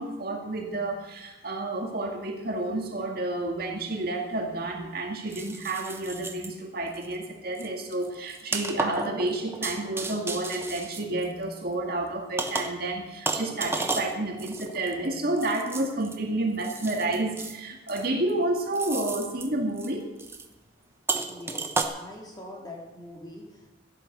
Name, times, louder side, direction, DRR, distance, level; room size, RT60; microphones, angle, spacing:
voice 1, 0.0-20.1, right 2 dB, 50° right, 2 dB, 2.2 m, -30 dB
sound 1, 3.8-3.9 5.3-6.6 6.9-7.2 7.5-11.7 12.4-12.9 13.3-16.2 16.6-17.6 17.9-18.3 18.7-19.5 19.8-19.9 20.2-20.5 21.1-21.8, right 3 dB, 10° right, 1.0 m, -33 dB
voice 2, 21.2-23.7, left 1 dB, 20° left, -1 dB, 3.4 m, -44 dB
14.0 x 11.0 x 6.8 m, 1.1 s
head